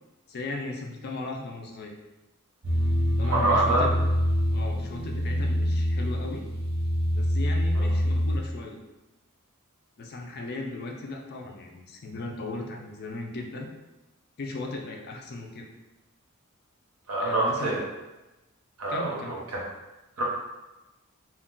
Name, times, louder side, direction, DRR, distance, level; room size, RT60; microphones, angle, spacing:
voice 1, 0.3-1.9 3.2-4.0 4.5-6.5 7.1-8.8 10.0-13.7 14.4-15.7 17.2-17.8 18.9-19.4, left 2 dB, 50° left, 1 dB, 0.4 m, -37 dB
sound 1, 2.6-8.4, equal, 50° right, 0.6 m, -25 dB
voice 2, 3.2-3.8 7.7-7.9 17.1-17.8 18.8-19.6 20.2-20.3, right 2 dB, 85° right, -4 dB, 0.8 m, -26 dB
2.3 x 2.1 x 3.7 m, 1.0 s
head